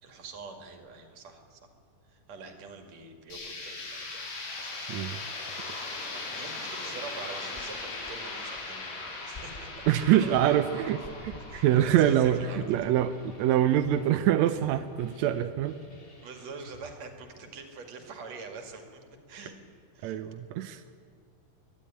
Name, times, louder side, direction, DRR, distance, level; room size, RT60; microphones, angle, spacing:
voice 1, 0.0-1.7 2.1-5.5 6.1-10.6 11.5-12.8 16.2-19.6 19.9-20.2, right 4 dB, 60° right, 4 dB, 3.1 m, -45 dB
sound 1, 3.3-13.1, left 3 dB, 85° left, 5.4 m, -39 dB
sound 2, 5.4-13.5, left 2 dB, 40° left, 0.6 m, -47 dB
sound 3, 9.8-16.9, left 1 dB, 25° left, 1.4 m, -51 dB
voice 2, 9.9-15.8 20.0-20.8, right 11 dB, 75° right, 9 dB, 1.7 m, -25 dB
23.0 x 11.5 x 9.8 m, 2.2 s
omnidirectional pair, 3.6 m